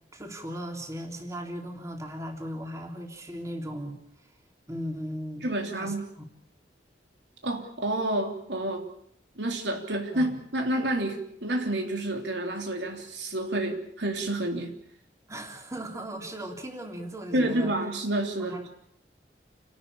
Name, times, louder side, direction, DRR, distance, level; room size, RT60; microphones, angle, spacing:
voice 1, 0.1-4.0 4.7-5.5 5.7-6.2 10.1-10.3 15.3-17.7 18.4-18.7, equal, 20° right, 2 dB, 3.6 m, -37 dB
voice 2, 5.4-6.1 7.4-8.9 9.4-14.7 17.3-18.6, right 1 dB, 80° right, 3 dB, 3.5 m, -29 dB
29.5 x 13.0 x 8.7 m, 0.70 s
head